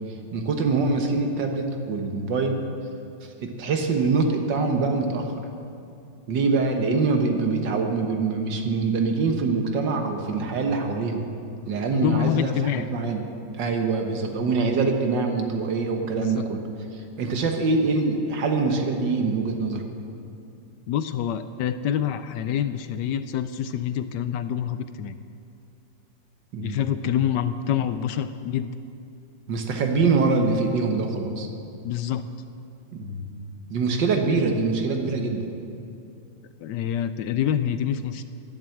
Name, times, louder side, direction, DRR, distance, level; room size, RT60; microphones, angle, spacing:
voice 1, 0.3-2.6 3.2-5.4 6.3-11.3 11.7-13.2 13.6-16.6 16.9-19.9 26.5-26.8 29.5-31.5 32.9-33.3 33.7-35.5, right 4 dB, 70° right, 4 dB, 1.9 m, -24 dB
voice 2, 11.9-12.9 16.2-16.5 20.9-25.2 26.6-28.7 31.8-32.2 36.6-38.2, left 10 dB, 75° left, 11 dB, 1.1 m, -26 dB
11.0 x 10.5 x 7.7 m, 2.6 s
omnidirectional pair, 2.0 m